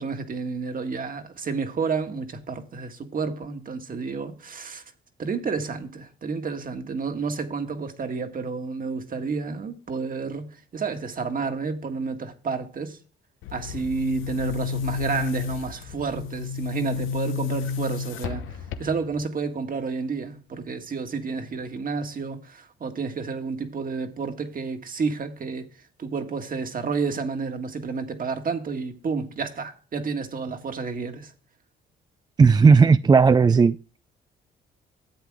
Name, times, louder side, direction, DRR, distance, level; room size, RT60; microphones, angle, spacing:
voice 1, 0.0-4.8 5.2-13.0 13.5-18.4 18.8-25.7 26.0-31.3, right 5 dB, 45° right, 1.7 m, -30 dB
Boom, 13.4-19.2, left 6 dB, 90° left, 1.0 m, -31 dB
voice 2, 32.4-33.8, right 5 dB, 20° right, 0.3 m, -15 dB
11.5 x 8.1 x 3.6 m
cardioid pair, 90°, 20 cm